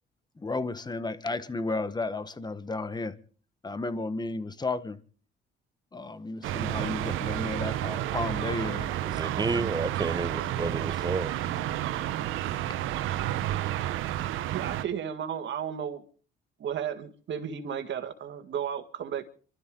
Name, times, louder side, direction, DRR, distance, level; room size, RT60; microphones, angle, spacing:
voice 1, 0.4-3.1 3.6-5.0 5.9-8.9, left 3 dB, 20° left, 1.3 m, -33 dB
sound 1, 6.4-14.8, right 13 dB, 90° right, 0.9 m, -31 dB
voice 2, 9.0-11.4, right 3 dB, 20° right, 0.9 m, -31 dB
voice 3, 14.5-16.0 16.6-19.2, right 8 dB, 65° right, 1.9 m, -33 dB
26.5 x 13.0 x 3.8 m
cardioid pair, 90°, 20 cm